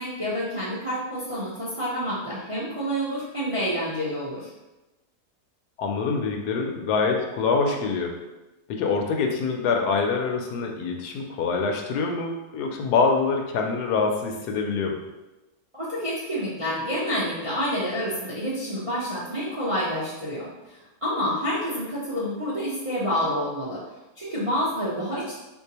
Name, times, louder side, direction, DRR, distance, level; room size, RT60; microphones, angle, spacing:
voice 1, 0.0-4.5 15.7-23.8 24.2-25.4, equal, 40° right, -9 dB, 0.5 m, -28 dB
voice 2, 5.8-8.2 8.7-15.0, left 4 dB, 85° left, 2 dB, 1.2 m, -25 dB
4.2 x 2.7 x 2.8 m, 1.1 s
omnidirectional pair, 1.7 m